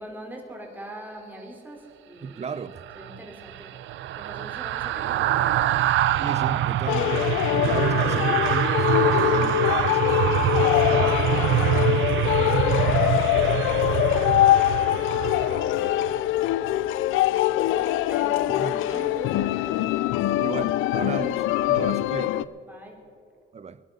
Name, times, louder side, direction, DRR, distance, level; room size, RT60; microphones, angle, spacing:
voice 1, 0.0-2.4 2.9-3.8 4.1-5.6 10.7-16.4 17.3-20.1 22.7-23.0, right 1 dB, 10° right, 3.2 m, -42 dB
voice 2, 2.2-2.9 6.2-10.4 18.6-19.1 20.4-22.5 23.5-23.8, right 6 dB, 35° right, 0.6 m, -34 dB
sound 1, 2.8-16.1 16.5-16.7, right 12 dB, 75° right, 0.5 m, -25 dB
sound 2, 6.9-22.4, left 14 dB, 90° left, 0.4 m, -23 dB
19.5 x 11.0 x 5.4 m
cardioid pair, 90°, 20 cm